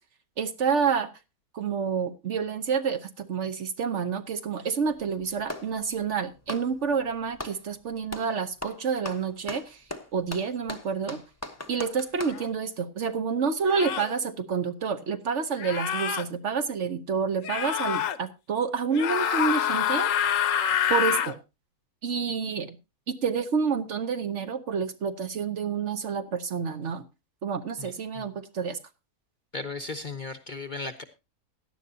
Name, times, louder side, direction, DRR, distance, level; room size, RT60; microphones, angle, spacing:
voice 1, 0.4-1.1 1.5-9.8 10.1-11.2 11.7-20.1 20.9-21.4 22.0-22.8 23.1-27.0 27.4-28.8, right 6 dB, 55° right, 9 dB, 1.1 m, -28 dB
Clapping, 4.8-5.8 6.4-7.6 8.1-8.3 8.6-12.4, left 1 dB, 10° left, 0.9 m, -39 dB
sound 1, 12.3-12.5 13.7-14.1 15.6-16.2 17.4-18.2 18.9-21.3, left 9 dB, 65° left, 1.1 m, -26 dB
voice 2, 27.8-28.3 29.5-31.0, left 3 dB, 40° left, 8 dB, 0.8 m, -36 dB
17.0 x 11.0 x 2.7 m, 0.26 s
omnidirectional pair, 1.6 m